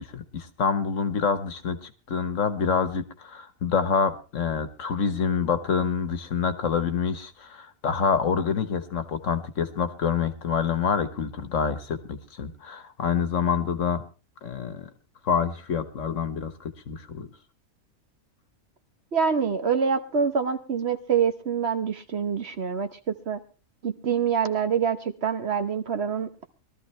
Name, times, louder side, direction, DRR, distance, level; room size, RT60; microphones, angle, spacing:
voice 1, 0.0-14.0 14.4-14.9 15.2-17.3, left 6 dB, 60° left, 11 dB, 1.5 m, -27 dB
voice 2, 19.1-22.9 23.3-23.4 23.8-26.3, right 6 dB, 50° right, 9 dB, 1.2 m, -25 dB
21.5 x 13.5 x 3.2 m, 0.32 s
omnidirectional pair, 1.5 m